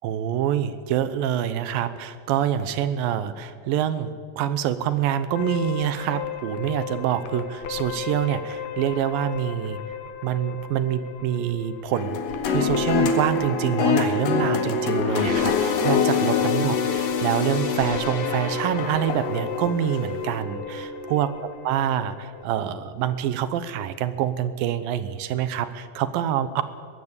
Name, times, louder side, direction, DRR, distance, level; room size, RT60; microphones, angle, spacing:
voice 1, 0.0-9.8 10.2-12.2 12.5-21.3 21.6-26.6, right 10 dB, 80° right, 13 dB, 2.7 m, -26 dB
sound 1, 5.4-22.4, left 9 dB, 90° left, 3.7 m, -35 dB
sound 2, 11.9-19.4 19.9-20.0, left 6 dB, 70° left, 3.4 m, -25 dB
sound 3, 14.8-22.5 22.9-23.1 24.0-24.1, left 3 dB, 50° left, 2.2 m, -32 dB
22.0 x 16.0 x 8.3 m, 2.1 s
omnidirectional pair, 4.1 m